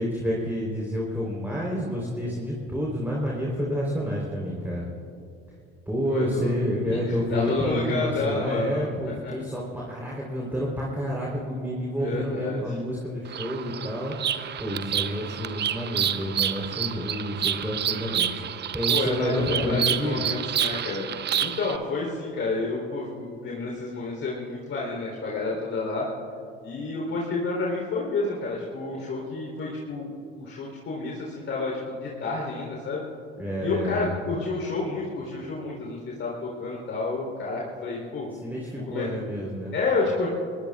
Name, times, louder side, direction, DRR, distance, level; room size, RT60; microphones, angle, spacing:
voice 1, 0.0-4.9 5.9-14.1 14.6-18.4 18.7-20.2 33.4-34.1 38.4-39.7, equal, 5° right, -4 dB, 3.7 m, -29 dB
voice 2, 6.1-6.5 6.9-8.9 9.2-9.3 12.0-12.7 18.9-21.1 21.4-26.1 26.6-30.1 30.4-33.0 33.6-38.3 38.9-39.1 39.7-40.3, left 3 dB, 45° left, -3 dB, 3.6 m, -30 dB
Bird vocalization bird call bird song, 13.3-21.8, right 9 dB, 35° right, 0.8 m, -29 dB
25.0 x 20.5 x 2.4 m, 2.6 s
hypercardioid pair, 60°, 30 cm